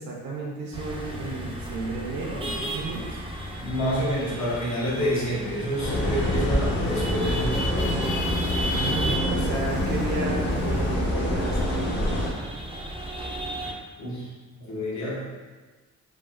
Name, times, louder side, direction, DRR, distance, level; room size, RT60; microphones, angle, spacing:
voice 1, 0.0-3.2 6.0-6.1 8.7-12.2, right 3 dB, 70° right, -2 dB, 0.7 m, -33 dB
sound 1, 0.7-13.7, equal, 20° right, 0.4 m, -34 dB
voice 2, 3.6-8.1 9.2-9.4 14.0-14.3 14.6-15.3, equal, 65° left, -6 dB, 1.0 m, -28 dB
sound 2, 5.8-12.3, left 1 dB, 35° left, 0.7 m, -26 dB
3.2 x 2.2 x 2.4 m, 1.3 s
cardioid pair, 90°, 30 cm